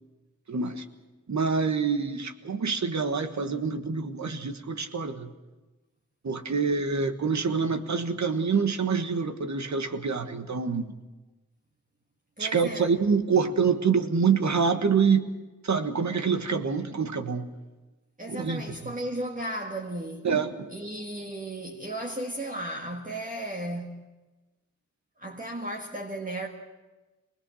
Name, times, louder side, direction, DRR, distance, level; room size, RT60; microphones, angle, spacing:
voice 1, 0.5-0.8 1.3-5.3 6.2-10.9 12.4-15.3 15.6-17.5 18.3-18.9 20.2-20.7, right 5 dB, 65° right, 1.5 m, -26 dB
voice 2, 12.4-12.9 18.2-20.3 20.7-24.0 25.2-26.5, right 1 dB, 25° right, 1.6 m, -35 dB
25.0 x 20.0 x 6.4 m
wide cardioid pair, 100°, 30 cm